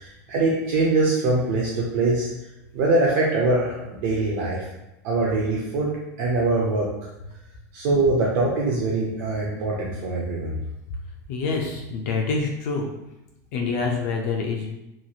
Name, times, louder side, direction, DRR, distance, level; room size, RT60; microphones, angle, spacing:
voice 1, 0.3-2.3 2.7-4.6 5.0-5.9 6.2-6.9 7.7-10.6, right 2 dB, 50° right, -4 dB, 0.5 m, -23 dB
voice 2, 11.3-12.9 13.5-14.7, left 4 dB, 50° left, 0 dB, 0.4 m, -26 dB
3.0 x 2.6 x 2.3 m, 0.92 s
supercardioid pair, 160°, 10 cm